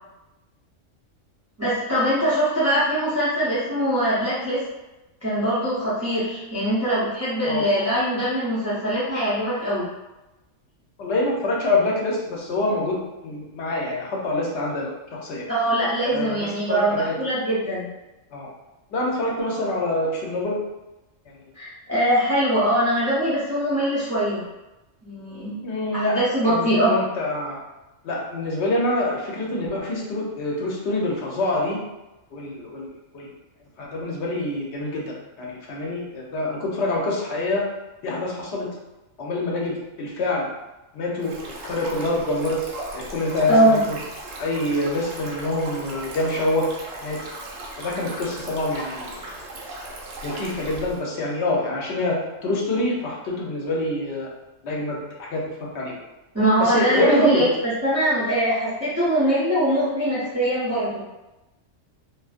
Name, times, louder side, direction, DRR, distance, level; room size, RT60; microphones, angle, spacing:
voice 1, 1.6-4.6 5.2-9.8 15.5-17.9 21.6-24.5 25.0-25.6 25.9-26.9 43.5-43.9 56.3-57.5 57.8-60.9, right 1 dB, 20° right, -11 dB, 0.5 m, -22 dB
voice 2, 11.0-15.4 16.0-17.1 18.3-18.5 18.9-20.6 25.6-26.2 26.4-27.6 28.0-31.8 32.3-32.9 33.1-33.3 33.8-37.6 38.0-38.7 39.2-40.5 40.9-41.3 41.6-42.6 42.9-44.0 44.4-46.7 47.0-47.2 47.8-49.4 49.9-54.3 54.6-55.9 56.6-57.5, left 1 dB, 60° left, -3 dB, 0.9 m, -26 dB
Stream, 41.2-51.0, right 2 dB, 75° right, 1.0 m, -37 dB
2.6 x 2.5 x 2.4 m, 1.0 s
omnidirectional pair, 1.3 m